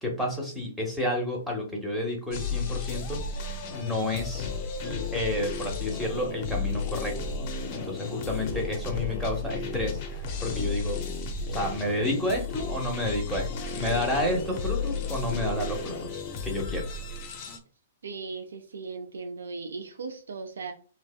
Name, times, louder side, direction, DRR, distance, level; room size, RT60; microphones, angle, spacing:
voice 1, 0.0-3.2 3.7-4.5 4.8-7.2 7.7-11.0 11.5-16.9, left 1 dB, ahead, -1 dB, 0.9 m, -30 dB
sound 1, 2.3-17.6, left 4 dB, 45° left, 0.5 m, -33 dB
voice 2, 18.0-20.7, right 4 dB, 80° right, 4 dB, 0.4 m, -37 dB
2.6 x 2.1 x 2.3 m, 0.39 s
hypercardioid pair, 120°, 0 cm